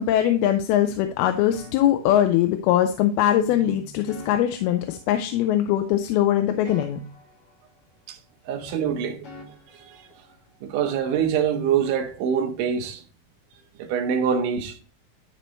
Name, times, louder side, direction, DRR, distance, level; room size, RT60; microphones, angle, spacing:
voice 1, 0.0-7.0, left 11 dB, 85° left, 2.5 m, -21 dB
sound 1, 0.8-2.8 3.4-5.7 6.0-8.3 8.6-10.6, left 1 dB, 50° left, 4.3 m, -48 dB
voice 2, 8.5-9.3 9.9-10.0 10.6-13.0 13.8-14.8, right 7 dB, 70° right, 2.2 m, -24 dB
12.0 x 4.4 x 3.1 m
omnidirectional pair, 4.4 m